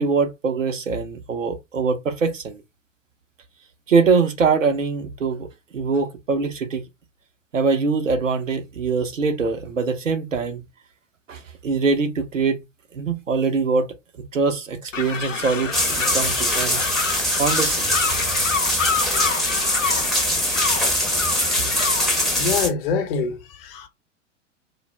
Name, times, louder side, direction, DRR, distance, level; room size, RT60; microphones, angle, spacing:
voice 1, 0.0-2.6 3.9-5.5 5.7-6.9 7.5-10.6 11.3-12.6 12.9-13.9 14.3-16.8 17.4-17.9, right 4 dB, 85° right, 0.7 m, -23 dB
sound 1, 14.9-22.4, left 6 dB, 85° left, 0.6 m, -28 dB
sound 2, 15.7-22.7, equal, ahead, 0.6 m, -22 dB
voice 2, 22.3-23.9, left 5 dB, 50° left, 0.8 m, -25 dB
2.4 x 2.1 x 3.1 m
figure-of-eight pair, 95°, 37 cm